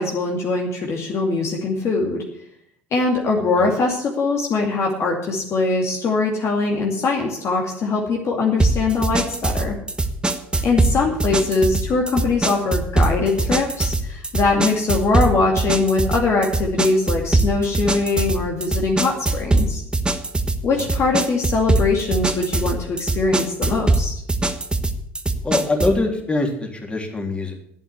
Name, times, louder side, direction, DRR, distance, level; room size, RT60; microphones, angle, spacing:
voice 1, 0.0-2.2 2.9-9.7 10.6-19.8 20.6-24.1, left 3 dB, 45° left, 0 dB, 2.5 m, -22 dB
sound 1, 8.6-26.0, right 2 dB, 15° right, 1.3 m, -22 dB
voice 2, 25.4-27.5, left 2 dB, 15° left, 1 dB, 3.5 m, -23 dB
11.5 x 8.5 x 8.3 m, 0.70 s
hypercardioid pair, 65°, 7 cm